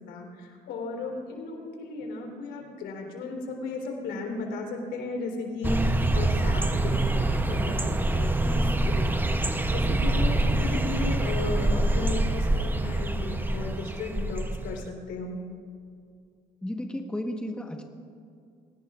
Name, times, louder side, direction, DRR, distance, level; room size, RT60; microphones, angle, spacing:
voice 1, 0.1-9.3 9.7-15.4, left 3 dB, 80° left, 1 dB, 3.6 m, -35 dB
sound 1, 5.6-14.8, right 2 dB, 10° right, 0.7 m, -25 dB
voice 2, 16.6-17.8, left 1 dB, 5° left, 3 dB, 1.2 m, -33 dB
23.5 x 18.5 x 2.5 m, 2.3 s
cardioid pair, 110°, 17 cm